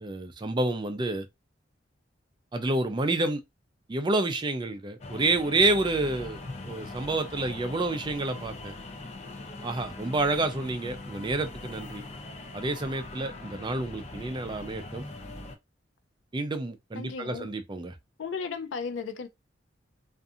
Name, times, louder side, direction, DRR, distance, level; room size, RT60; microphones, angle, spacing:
voice 1, 0.0-1.3 2.5-3.4 3.9-8.7 9.6-12.0 12.5-15.0 16.3-18.0, right 2 dB, 25° right, 0.4 m, -29 dB
sound 1, 5.0-15.6, left 2 dB, 35° left, 0.5 m, -41 dB
voice 2, 17.0-17.5 18.2-19.3, left 5 dB, 90° left, 0.5 m, -35 dB
2.6 x 2.5 x 2.4 m
head